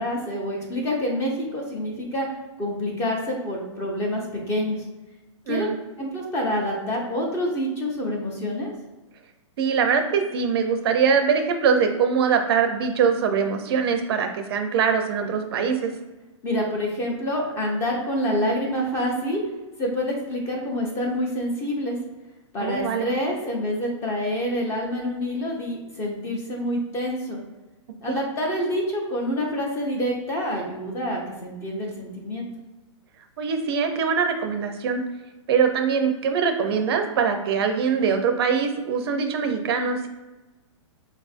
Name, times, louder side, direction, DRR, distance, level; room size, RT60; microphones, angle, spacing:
voice 1, 0.0-2.3 2.6-4.9 5.5-5.7 6.0-8.7 16.4-19.4 19.8-22.0 22.5-27.4 28.0-32.5, equal, 15° left, -1 dB, 0.6 m, -27 dB
voice 2, 9.6-15.9 22.6-23.1 28.1-28.2 33.4-35.0 35.5-40.1, right 6 dB, 50° right, 6 dB, 0.5 m, -23 dB
5.1 x 2.5 x 2.4 m, 1.1 s
hypercardioid pair, 160°, 16 cm